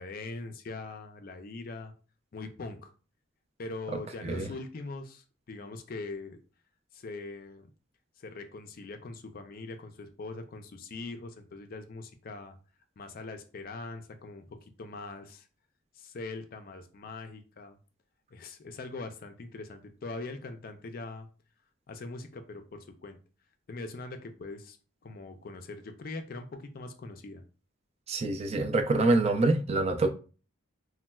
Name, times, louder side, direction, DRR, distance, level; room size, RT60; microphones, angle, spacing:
voice 1, 0.0-1.9 2.3-2.9 3.6-6.4 6.9-7.7 8.2-12.6 13.0-15.5 16.0-17.8 18.3-21.3 21.9-23.2 23.7-24.8 25.0-27.4, left 3 dB, 45° left, 0.4 m, -42 dB
voice 2, 28.1-30.1, right 2 dB, 30° right, 0.3 m, -25 dB
4.1 x 2.2 x 2.2 m
head